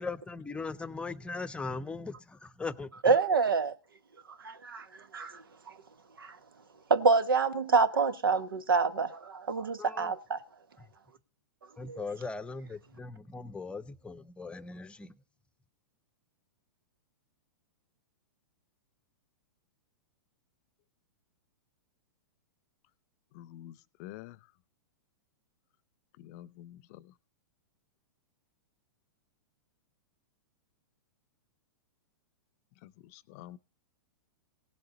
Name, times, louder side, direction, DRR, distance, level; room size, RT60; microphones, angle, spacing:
voice 1, 0.0-3.1 9.8-10.1 11.8-15.1, left 4 dB, 10° left, 0.7 m, -39 dB
voice 2, 3.0-3.7 4.4-5.7 6.2-6.4 6.9-10.4 11.9-12.0, right 4 dB, 80° right, 1.3 m, -27 dB
voice 3, 23.3-24.4 26.2-27.1 32.8-33.6, left 14 dB, 45° left, 0.7 m, -48 dB
18.0 x 7.8 x 3.9 m
hypercardioid pair, 115°, 11 cm